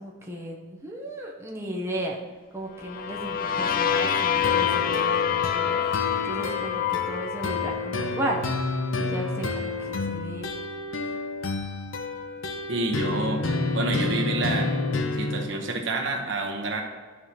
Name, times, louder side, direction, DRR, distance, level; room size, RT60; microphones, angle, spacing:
voice 1, 0.0-2.2 2.5-8.7 9.0-10.5, right 1 dB, 15° right, -2 dB, 0.8 m, -35 dB
sound 1, 2.8-8.7, left 8 dB, 45° left, 0.4 m, -27 dB
sound 2, 4.4-15.4, left 3 dB, 80° left, 0.7 m, -30 dB
voice 2, 12.7-13.4 13.7-14.7 15.1-16.8, right 2 dB, 65° right, 2 dB, 1.0 m, -28 dB
11.0 x 4.9 x 2.9 m, 1.5 s
head